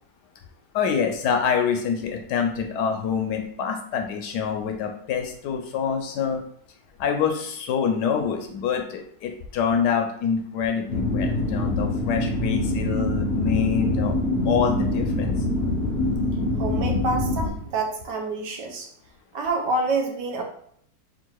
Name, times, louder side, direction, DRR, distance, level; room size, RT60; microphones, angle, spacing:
voice 1, 0.7-6.4 7.0-14.1 14.4-15.4, left 7 dB, 75° left, 4 dB, 1.1 m, -26 dB
sound 1, 10.9-17.5, left 2 dB, 40° left, 0.7 m, -24 dB
voice 2, 16.6-18.9 19.3-20.4, right 3 dB, 75° right, 2 dB, 1.3 m, -27 dB
3.7 x 2.5 x 4.5 m, 0.67 s
omnidirectional pair, 2.0 m